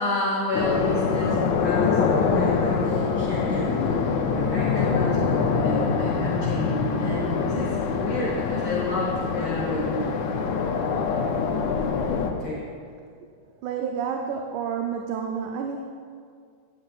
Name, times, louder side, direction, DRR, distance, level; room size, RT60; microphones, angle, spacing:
voice 1, 0.0-4.1 4.3-10.1 12.2-12.6, left 2 dB, 60° left, -5 dB, 1.1 m, -30 dB
sound 1, 0.5-12.3, left 5 dB, 80° left, 1.9 m, -24 dB
voice 2, 13.6-15.8, right 7 dB, 90° right, 3 dB, 2.0 m, -29 dB
9.8 x 9.4 x 2.4 m, 2.2 s
omnidirectional pair, 3.4 m